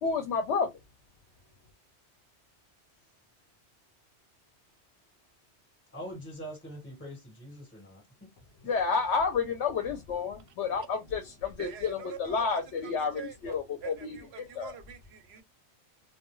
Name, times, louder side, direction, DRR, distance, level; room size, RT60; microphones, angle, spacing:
voice 1, 0.0-0.7 8.6-14.7, left 5 dB, 80° left, 0.9 m, -30 dB
voice 2, 5.9-8.3, equal, 10° left, 1.2 m, -43 dB
voice 3, 11.6-15.4, right 8 dB, 70° right, 0.8 m, -45 dB
2.3 x 2.2 x 3.0 m
omnidirectional pair, 1.2 m